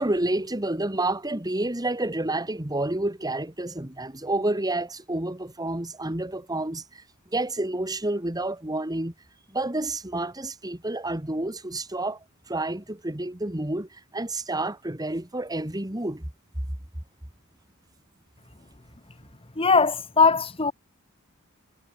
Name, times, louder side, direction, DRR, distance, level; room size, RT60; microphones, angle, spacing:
voice 1, 0.0-7.0 7.3-9.1 9.5-12.2 12.5-16.3, right 2 dB, 15° right, 1.9 m, -29 dB
voice 2, 19.6-20.7, left 4 dB, 25° left, 1.8 m, -20 dB
head